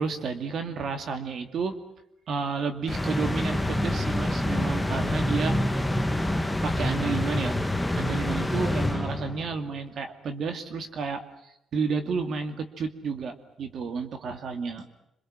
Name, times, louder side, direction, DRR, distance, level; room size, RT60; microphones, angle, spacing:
voice 1, 0.0-1.8 2.3-5.6 6.6-7.5 8.0-14.9, right 5 dB, 60° right, 7 dB, 2.5 m, -31 dB
sound 1, 2.9-9.6, left 1 dB, 5° left, 1.5 m, -27 dB
27.5 x 25.5 x 6.3 m, 0.80 s
cardioid pair, 90°, 0 cm